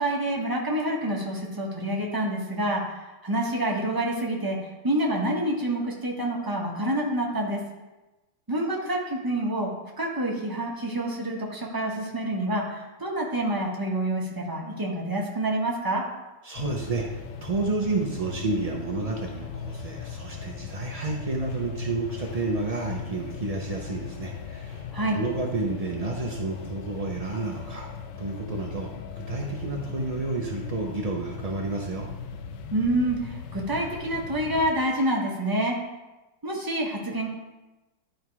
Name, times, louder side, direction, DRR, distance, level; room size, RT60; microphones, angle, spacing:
voice 1, 0.0-2.8 3.2-4.6 4.8-7.6 8.5-9.7 10.0-16.0 24.9-25.2 32.7-35.8 36.4-37.3, right 1 dB, 15° right, -2 dB, 1.0 m, -27 dB
voice 2, 16.4-17.0 17.4-24.8 25.1-27.9 28.2-28.9 29.3-32.1, right 3 dB, 60° right, -1 dB, 0.4 m, -30 dB
sound 1, 16.5-34.7, left 6 dB, 80° left, 1.2 m, -39 dB
11.0 x 3.9 x 4.7 m, 1.1 s
omnidirectional pair, 1.9 m